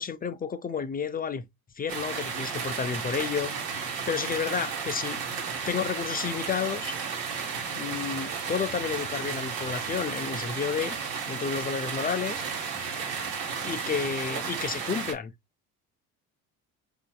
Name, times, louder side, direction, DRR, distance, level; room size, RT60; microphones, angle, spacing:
voice 1, 0.0-1.4 1.8-3.5 4.1-5.2 5.7-6.9 7.7-11.0 11.3-12.4 13.6-15.3, left 6 dB, 20° left, 0.4 m, -31 dB
sound 1, 1.9-15.1, right 6 dB, 80° right, 1.3 m, -33 dB
4.8 x 2.6 x 2.3 m
hypercardioid pair, 70°, 44 cm